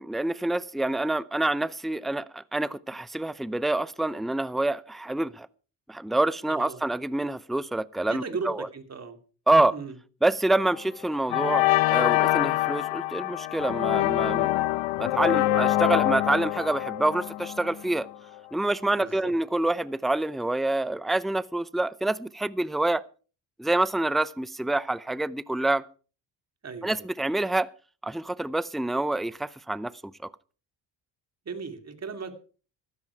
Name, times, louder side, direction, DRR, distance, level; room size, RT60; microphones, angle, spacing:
voice 1, 0.0-5.5 5.9-8.7 9.5-9.8 10.2-14.5 15.0-18.1 18.5-23.0 23.6-25.8 26.8-27.7 28.0-30.3, right 2 dB, ahead, 0.6 m, -27 dB
voice 2, 6.5-6.8 8.1-9.2 9.7-9.9 19.0-19.3 26.6-27.0 31.5-32.4, right 5 dB, 35° right, 2.8 m, -37 dB
sound 1, 10.5-10.8 11.3-18.1, left 16 dB, 85° left, 0.9 m, -25 dB
15.0 x 13.5 x 4.8 m
cardioid pair, 80°, 44 cm